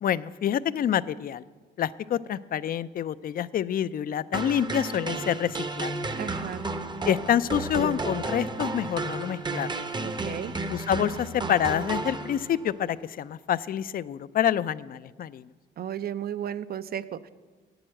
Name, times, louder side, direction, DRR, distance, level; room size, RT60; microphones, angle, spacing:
voice 1, 0.0-1.4 1.8-5.9 7.0-9.7 10.7-15.5, left 10 dB, 50° left, 17 dB, 0.4 m, -27 dB
sound 1, 4.3-12.7, right 3 dB, 20° right, 0.7 m, -32 dB
voice 2, 6.2-6.7 10.0-10.5 15.8-17.3, right 9 dB, 50° right, 15 dB, 0.5 m, -34 dB
8.7 x 7.8 x 7.6 m, 1.3 s
cardioid pair, 90°, 20 cm